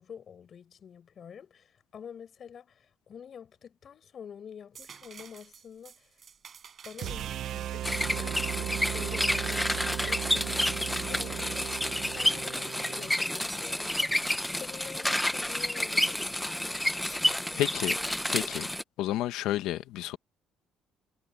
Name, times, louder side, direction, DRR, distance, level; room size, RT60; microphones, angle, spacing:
voice 1, 0.0-6.2 6.8-11.6 12.1-16.4 17.1-17.6, left 7 dB, 45° left, 5.8 m, -47 dB
sound 1, 4.7-10.3 10.9-11.8 13.9-14.1, right 7 dB, 40° right, 6.4 m, -52 dB
sound 2, 7.0-13.2, right 12 dB, 60° right, 0.6 m, -36 dB
sound 3, 7.8-18.8, left 1 dB, 5° left, 0.5 m, -30 dB
voice 2, 17.6-17.9 18.3-18.7 19.0-20.2, left 14 dB, 85° left, 1.3 m, -30 dB
cardioid pair, 130°, 0 cm